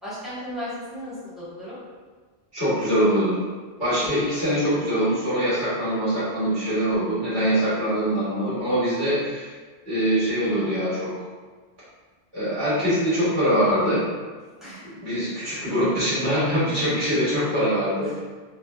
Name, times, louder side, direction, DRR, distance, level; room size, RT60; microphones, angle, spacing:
voice 1, 0.0-1.8 14.6-14.8 18.0-18.1, equal, ahead, -13 dB, 1.2 m, -35 dB
voice 2, 2.5-3.4 3.8-9.5 9.8-11.2 12.3-14.0 14.9-18.2, equal, 50° right, -12 dB, 1.7 m, -23 dB
3.4 x 2.1 x 2.3 m, 1.4 s
omnidirectional pair, 1.1 m